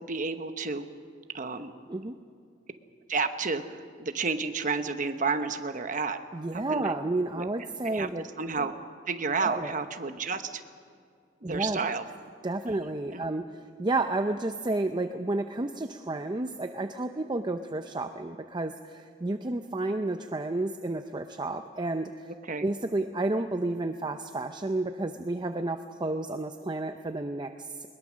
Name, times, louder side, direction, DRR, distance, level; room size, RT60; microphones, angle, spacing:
voice 1, 0.1-0.9 1.3-1.7 3.1-6.2 6.5-6.9 7.3-7.4 7.8-8.1 8.4-8.7 9.1-10.6 11.4-12.0 13.1-13.3 22.5-22.6, right 4 dB, 40° right, 8 dB, 1.0 m, -31 dB
voice 2, 6.3-8.3 9.4-9.8 11.4-11.8 12.4-22.3 22.6-27.9, right 2 dB, 25° right, 7 dB, 0.6 m, -31 dB
21.0 x 21.0 x 6.3 m, 2.2 s
head